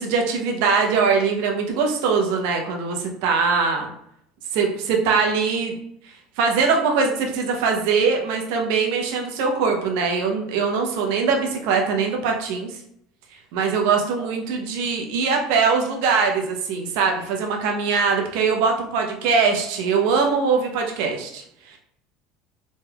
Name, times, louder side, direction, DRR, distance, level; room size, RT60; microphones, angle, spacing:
voice 1, 0.0-3.9 4.5-5.8 6.0-12.8 13.5-21.8, right 5 dB, 75° right, 2 dB, 0.6 m, -22 dB
3.1 x 2.3 x 3.4 m, 0.73 s
cardioid pair, 155°, 0 cm